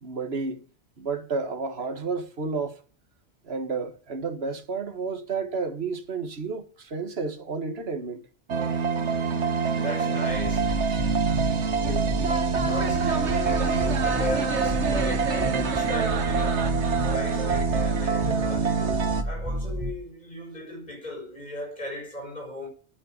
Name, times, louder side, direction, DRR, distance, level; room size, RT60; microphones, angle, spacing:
voice 1, 0.0-0.6 1.0-2.8 3.4-8.2, right 4 dB, 65° right, 1.9 m, -31 dB
sound 1, 8.5-19.2, right 5 dB, 80° right, 1.6 m, -25 dB
voice 2, 9.8-11.0 11.8-16.7 17.0-22.7, left 1 dB, 40° left, 7.4 m, -36 dB
sound 2, 10.3-19.9, right 1 dB, 25° right, 1.3 m, -31 dB
10.0 x 9.3 x 9.4 m
omnidirectional pair, 1.2 m